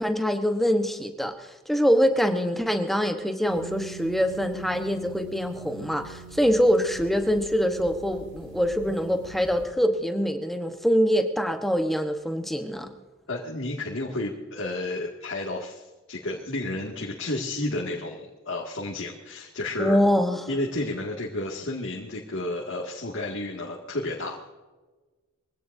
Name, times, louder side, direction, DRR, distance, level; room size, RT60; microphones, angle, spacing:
voice 1, 0.0-12.9 19.8-20.5, equal, ahead, 5 dB, 1.1 m, -24 dB
sound 1, 3.5-9.7, right 4 dB, 60° right, 2.9 m, -43 dB
voice 2, 13.3-15.8 16.1-20.0 20.5-24.5, left 2 dB, 65° left, -2 dB, 2.2 m, -31 dB
23.5 x 17.0 x 2.7 m, 1.2 s
head